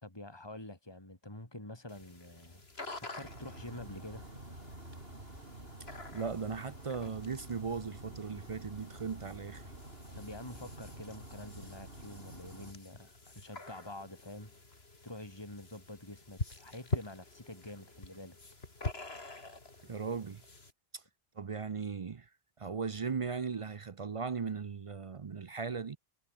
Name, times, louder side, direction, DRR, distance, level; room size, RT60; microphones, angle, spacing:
voice 1, 0.0-2.6 3.2-4.3 10.1-14.5 15.0-18.4, left 1 dB, 25° left, 3.4 m, -47 dB
sound 1, 1.9-20.7, left 2 dB, 85° left, 3.6 m, -46 dB
sound 2, 3.2-12.7, right 1 dB, 70° right, 6.0 m, -49 dB
voice 2, 6.1-9.7 19.8-20.4 20.9-21.0 21.4-22.3 22.6-26.0, right 5 dB, 40° right, 0.6 m, -38 dB
omnidirectional pair, 1.0 m